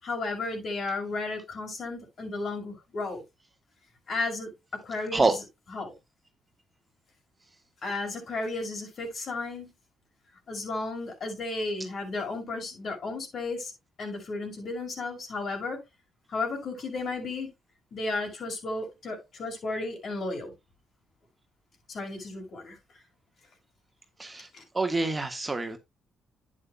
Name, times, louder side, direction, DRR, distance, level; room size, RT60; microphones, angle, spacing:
voice 1, 0.0-3.2 4.1-5.3 5.7-5.9 7.8-9.7 10.5-13.7 14.0-15.8 16.3-17.5 17.9-20.5 21.9-22.8 24.5-24.6, left 3 dB, 55° left, 5.7 m, -33 dB
voice 2, 24.7-25.8, right 3 dB, 20° right, 1.5 m, -26 dB
11.0 x 8.9 x 2.2 m
cardioid pair, 90°, 0 cm